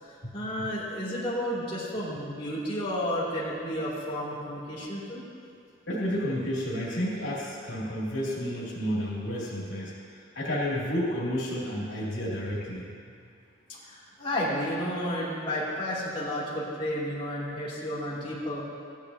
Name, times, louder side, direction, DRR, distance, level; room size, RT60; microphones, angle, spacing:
voice 1, 0.0-5.2 13.8-18.6, equal, 30° left, -9 dB, 2.6 m, -32 dB
voice 2, 5.9-12.9, equal, 85° left, -6 dB, 2.5 m, -31 dB
15.0 x 10.5 x 2.8 m, 2.3 s
head